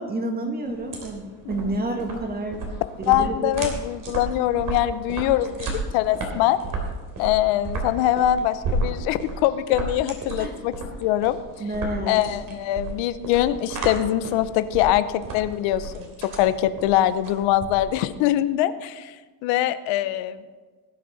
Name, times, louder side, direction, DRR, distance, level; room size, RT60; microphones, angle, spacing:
voice 1, 0.0-2.6 3.1-3.5 10.4-10.6 11.6-12.2, right 1 dB, 20° right, 3 dB, 2.0 m, -29 dB
sound 1, 0.7-18.1, right 2 dB, 45° right, 3.3 m, -33 dB
voice 2, 3.1-6.6 7.2-10.7 11.0-11.4 12.1-19.1 19.4-20.4, left 12 dB, 90° left, 12 dB, 0.9 m, -23 dB
19.5 x 8.6 x 4.1 m, 1.3 s
cardioid pair, 140°, 43 cm